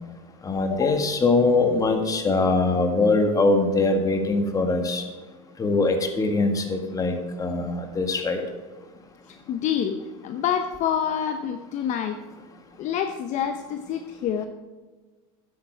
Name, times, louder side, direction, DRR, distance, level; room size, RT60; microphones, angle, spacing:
voice 1, 0.4-5.0 5.6-8.4, left 3 dB, 20° left, 5 dB, 1.6 m, -22 dB
voice 2, 9.5-10.0 10.2-12.2 12.8-14.5, left 9 dB, 45° left, 7 dB, 0.7 m, -27 dB
10.5 x 8.6 x 4.6 m, 1.3 s
supercardioid pair, 115°, 17 cm